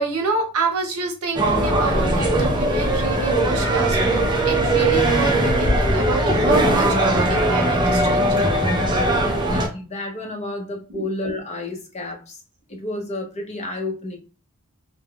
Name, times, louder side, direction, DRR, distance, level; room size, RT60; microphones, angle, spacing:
voice 1, 0.0-8.6 9.3-9.5 10.9-11.0, right 3 dB, 70° right, 0.7 m, -28 dB
sound 1, 1.3-9.7, right 1 dB, 20° right, 0.5 m, -19 dB
voice 2, 9.0-12.4 12.7-14.2, left 1 dB, 30° left, 0.7 m, -30 dB
3.3 x 2.1 x 2.3 m
head